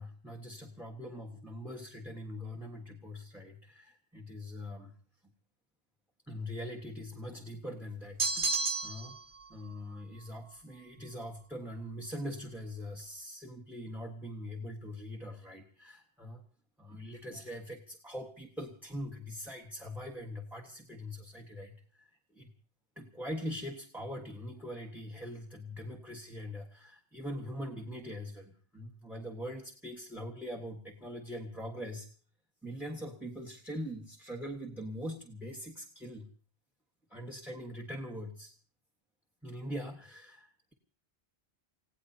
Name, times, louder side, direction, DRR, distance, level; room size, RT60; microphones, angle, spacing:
voice 1, 0.0-4.9 6.3-9.2 9.5-16.4 16.8-22.5 23.0-32.1 32.6-36.3 37.1-38.5 39.4-40.7, equal, ahead, 2 dB, 1.4 m, -42 dB
sound 1, 8.2-9.2, right 3 dB, 55° right, 1.1 m, -31 dB
30.0 x 16.5 x 2.8 m, 0.42 s
omnidirectional pair, 1.1 m